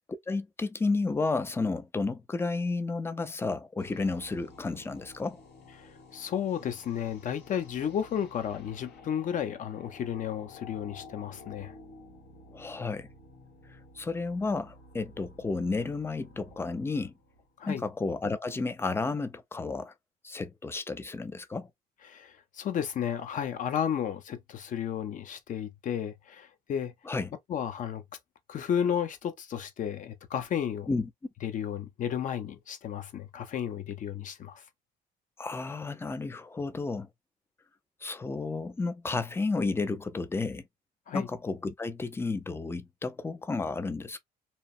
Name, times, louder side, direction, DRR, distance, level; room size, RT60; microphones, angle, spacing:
voice 1, 0.3-5.4 12.5-13.1 14.0-17.1 17.7-19.9 20.2-21.7 27.1-27.3 30.9-31.1 35.4-37.1 38.0-40.6 41.1-44.2, left 3 dB, 15° left, 0.4 m, -32 dB
sound 1, 3.8-17.9, left 3 dB, 80° left, 1.4 m, -52 dB
voice 2, 5.8-11.7 17.6-17.8 22.1-26.9 27.5-28.0 28.5-30.9 31.4-34.6 41.1-41.3, left 9 dB, 50° left, 0.7 m, -33 dB
2.9 x 2.0 x 2.5 m
cardioid pair, 110°, 17 cm